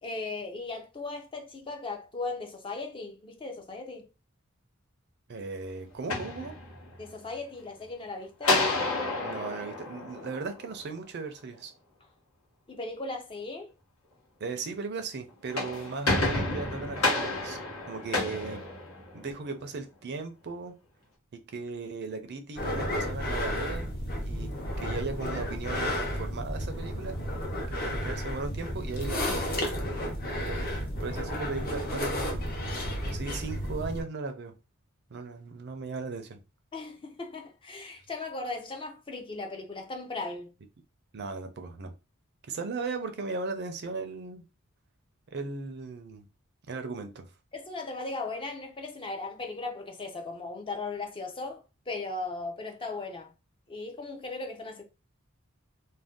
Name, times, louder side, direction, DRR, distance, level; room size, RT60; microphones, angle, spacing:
voice 1, 0.0-4.0 7.0-8.7 12.7-13.7 36.7-40.5 47.5-53.3 53.7-54.8, left 3 dB, 25° left, 0.5 m, -37 dB
voice 2, 5.3-6.5 9.2-11.7 14.4-17.6 17.9-18.6 19.1-20.7 21.5-23.9 24.2-24.5 24.8-27.2 27.7-29.4 30.4-30.7 31.0-32.6 33.0-34.5 35.1-36.4 41.1-41.9 42.5-44.4 45.3-46.2 46.7-47.3, right 4 dB, 50° right, 0.5 m, -37 dB
sound 1, 5.9-7.1 8.4-10.9 15.3-19.4, left 2 dB, 80° left, 1.1 m, -30 dB
sound 2, 22.6-34.0, equal, 45° left, 0.8 m, -32 dB
2.6 x 2.1 x 3.5 m
head